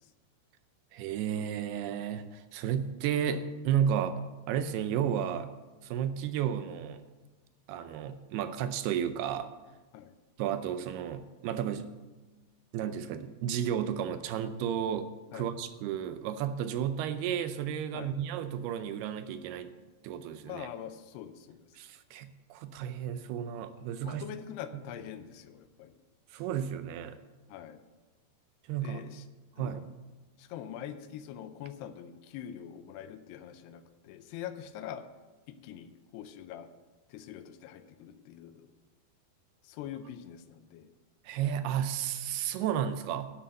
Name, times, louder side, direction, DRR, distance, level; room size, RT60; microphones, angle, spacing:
voice 1, 0.9-4.2 4.5-5.5 5.8-7.0 7.7-9.5 10.4-11.9 12.7-19.7 20.0-20.7 21.8-24.2 24.7-24.8 26.3-27.2 28.7-29.0 29.6-29.9 41.2-43.3, right 9 dB, 80° right, 10 dB, 2.5 m, -32 dB
voice 2, 20.5-21.7 24.0-25.9 27.5-27.8 28.8-29.2 29.6-29.9 30.4-35.0 35.6-36.7 37.1-38.6 39.6-40.9, left 10 dB, 80° left, 10 dB, 2.7 m, -44 dB
11.0 x 7.3 x 7.7 m, 1.2 s
omnidirectional pair, 4.8 m